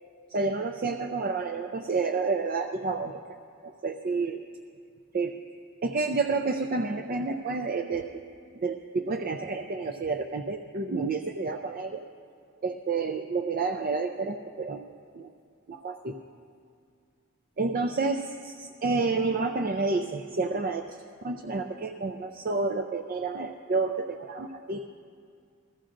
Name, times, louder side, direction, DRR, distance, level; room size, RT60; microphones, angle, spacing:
voice 1, 0.3-3.2 3.6-4.4 5.1-5.4 5.8-8.1 8.5-12.0 12.6-14.8 15.1-15.3 15.7-16.2 17.6-20.9 21.2-24.8, right 3 dB, 40° right, 6 dB, 0.4 m, -29 dB
20.5 x 15.0 x 2.5 m, 2.3 s
head